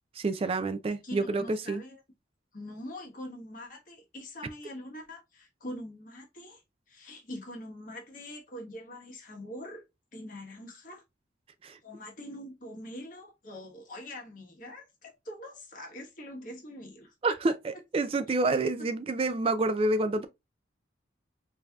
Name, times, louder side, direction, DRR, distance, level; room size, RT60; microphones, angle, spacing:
voice 1, 0.2-1.8 11.6-11.8 17.2-17.5 17.9-20.3, right 2 dB, 30° right, 0.3 m, -28 dB
voice 2, 1.0-2.0 2.5-6.6 6.9-9.8 10.1-11.0 11.8-17.4, left 1 dB, 45° left, 1.3 m, -44 dB
5.1 x 2.7 x 2.3 m
head